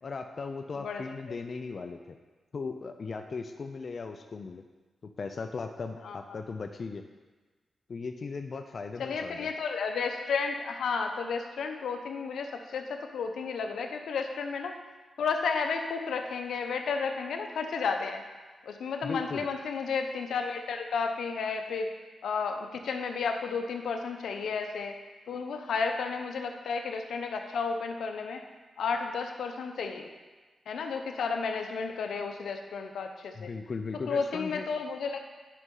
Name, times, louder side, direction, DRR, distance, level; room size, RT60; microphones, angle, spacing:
voice 1, 0.0-2.2 2.5-4.6 5.2-7.0 7.9-9.5 19.0-19.5 33.4-34.7, left 4 dB, 50° left, 5 dB, 0.5 m, -37 dB
voice 2, 0.7-1.1 6.0-6.2 9.0-14.8 15.2-18.2 18.6-21.9 22.2-25.0 25.3-28.4 28.8-30.1 30.7-33.5 34.1-35.3, left 5 dB, 85° left, 4 dB, 0.8 m, -32 dB
11.0 x 5.4 x 3.9 m, 1.3 s
cardioid pair, 75°, 0 cm